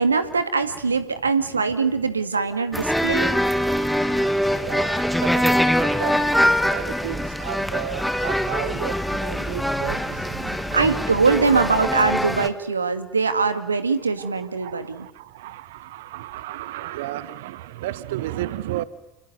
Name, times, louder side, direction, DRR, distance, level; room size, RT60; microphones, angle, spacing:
voice 1, 0.0-3.3 10.7-15.1, right 4 dB, 85° right, 10 dB, 2.1 m, -22 dB
sound 1, 2.7-12.5, equal, ahead, 2.3 m, -23 dB
voice 2, 4.5-6.3 6.6-11.0 14.2-18.8, right 14 dB, 65° right, 18 dB, 1.1 m, -34 dB
29.5 x 20.5 x 9.5 m, 0.95 s
figure-of-eight pair, 75°, 0 cm